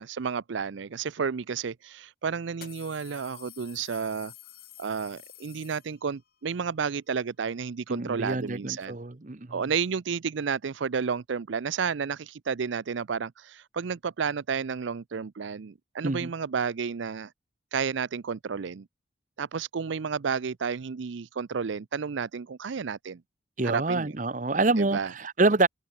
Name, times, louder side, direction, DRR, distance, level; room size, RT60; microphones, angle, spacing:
voice 1, 0.0-4.3 4.8-8.9 9.5-17.3 17.7-18.8 19.4-23.2 23.6-24.1 24.8-25.1, right 6 dB, 70° right, 0.5 m, -31 dB
sound 1, 1.4-1.5 2.5-6.3, left 13 dB, 50° left, 1.8 m, -50 dB
voice 2, 7.9-9.7 16.0-16.3 23.6-25.7, right 3 dB, 40° right, 0.9 m, -26 dB
head